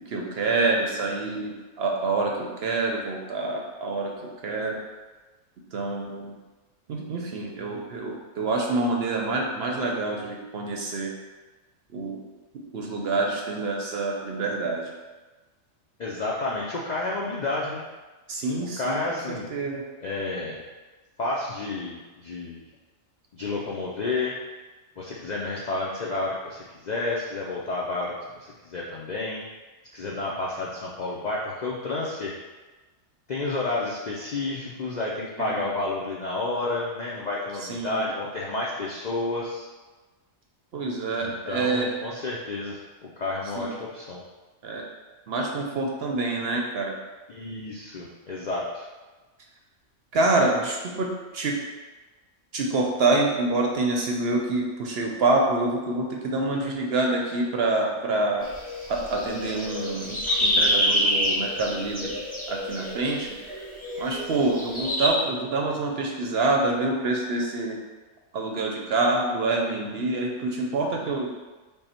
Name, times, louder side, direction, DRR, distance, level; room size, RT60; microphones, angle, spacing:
voice 1, 0.1-4.1 4.4-4.8 5.7-6.3 6.9-11.1 11.9-12.2 12.7-14.9 18.3-19.0 19.3-19.8 35.4-35.7 37.7-38.0 40.7-41.9 43.6-43.8 44.6-44.8 45.3-46.9 50.1-51.1 51.3-51.6 52.5-58.5 58.9-62.1 62.5-63.4 64.0-67.8 68.3-71.3, right 2 dB, 60° right, 0 dB, 0.8 m, -26 dB
voice 2, 16.0-17.8 18.6-19.5 20.0-20.6 21.2-22.6 23.3-24.4 25.0-29.4 29.9-32.4 33.3-39.7 41.2-44.2 47.3-48.9, left 2 dB, 60° left, -4 dB, 0.4 m, -30 dB
sound 1, 58.4-65.1, equal, 5° left, 1.3 m, -27 dB
5.3 x 2.2 x 4.2 m, 1.2 s
omnidirectional pair, 1.3 m